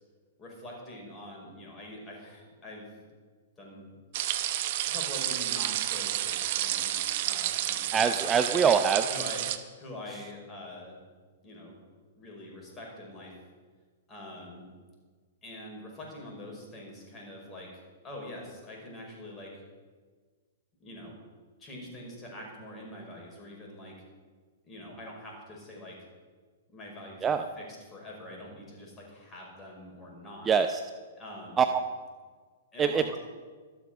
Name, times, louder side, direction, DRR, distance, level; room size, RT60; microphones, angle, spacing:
voice 1, 0.4-2.9 3.6-3.9 4.2-4.4 4.9-8.1 8.3-8.7 9.1-11.0 11.4-11.8 12.2-13.4 14.1-14.7 15.4-19.6 20.8-21.1 21.6-24.0 24.6-26.0 26.7-30.5 31.2-31.6 32.7-33.1, left 1 dB, 20° left, -1 dB, 5.4 m, -44 dB
sound 1, 4.1-9.6, right 13 dB, 45° right, 1.0 m, -30 dB
voice 2, 7.9-9.0 27.2-27.5 30.5-30.8 31.6-31.8 32.8-33.2, right 6 dB, 20° right, 8 dB, 0.6 m, -24 dB
13.0 x 12.5 x 6.5 m, 1.5 s
figure-of-eight pair, 110°, 0 cm